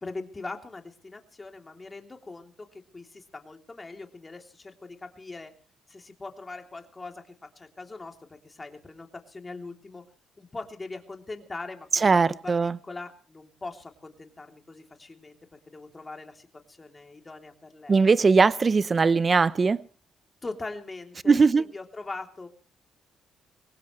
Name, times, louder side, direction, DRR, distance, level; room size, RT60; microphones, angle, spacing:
voice 1, 0.0-5.5 5.9-10.0 10.4-18.1 20.4-22.5, left 3 dB, 25° left, 3.2 m, -41 dB
voice 2, 12.0-12.7 17.9-19.8 21.3-21.6, right 4 dB, 35° right, 0.8 m, -20 dB
23.5 x 19.0 x 3.2 m
cardioid pair, 90°, 0 cm